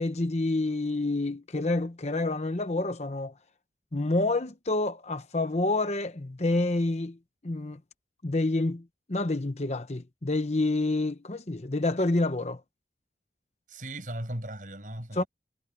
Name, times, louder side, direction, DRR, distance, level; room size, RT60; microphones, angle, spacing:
voice 1, 0.0-3.3 3.9-7.2 7.4-7.8 8.2-12.6 15.2-15.3, left 2 dB, 40° left, 0.9 m, -28 dB
voice 2, 13.7-15.3, right 1 dB, 50° right, 6.4 m, -37 dB
head